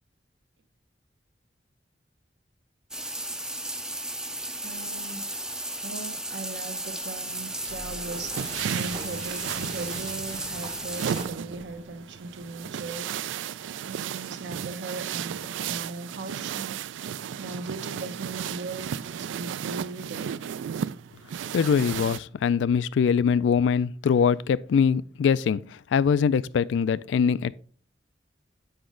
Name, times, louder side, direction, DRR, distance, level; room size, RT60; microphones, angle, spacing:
sound 1, 2.9-11.2, right 1 dB, 5° right, 0.4 m, -35 dB
voice 1, 4.6-5.3 5.8-13.5 13.8-20.3, right 3 dB, 70° right, 0.9 m, -39 dB
sound 2, 7.3-22.2, right 8 dB, 85° right, 0.3 m, -34 dB
Sliding door, 7.5-13.1, right 1 dB, 30° right, 0.8 m, -45 dB
voice 2, 21.5-25.6 25.9-27.5, left 6 dB, 75° left, 0.3 m, -22 dB
7.9 x 5.1 x 3.8 m
head